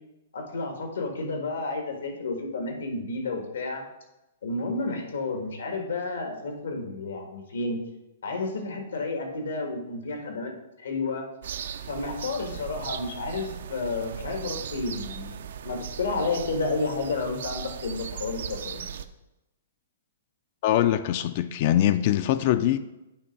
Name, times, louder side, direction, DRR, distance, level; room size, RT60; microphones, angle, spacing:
voice 1, 0.3-3.8 4.4-7.8 8.2-10.5 10.8-11.3 11.9-15.4 15.6-18.9, left 3 dB, 90° left, 1.6 m, -31 dB
sound 1, 11.4-19.0, right 8 dB, 65° right, 0.4 m, -38 dB
voice 2, 20.6-22.8, left 12 dB, 40° left, 0.3 m, -23 dB
8.5 x 3.0 x 5.9 m
hypercardioid pair, 160°, 0 cm